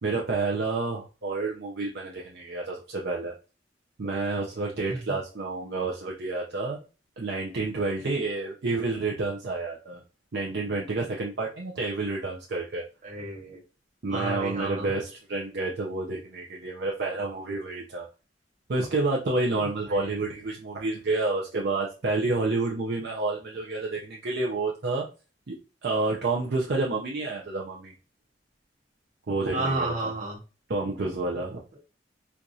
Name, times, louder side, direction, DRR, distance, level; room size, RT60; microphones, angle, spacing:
voice 1, 0.0-3.3 4.0-6.8 7.2-10.0 10.3-12.8 14.0-18.1 18.7-25.1 25.5-25.6 25.8-27.9 29.3-30.1 30.7-31.6, right 3 dB, 60° right, -2 dB, 0.6 m, -29 dB
voice 2, 13.0-13.6 14.1-14.9 19.5-20.3 29.5-30.4, right 2 dB, 40° right, -2 dB, 1.4 m, -32 dB
4.5 x 2.4 x 2.6 m, 0.33 s
head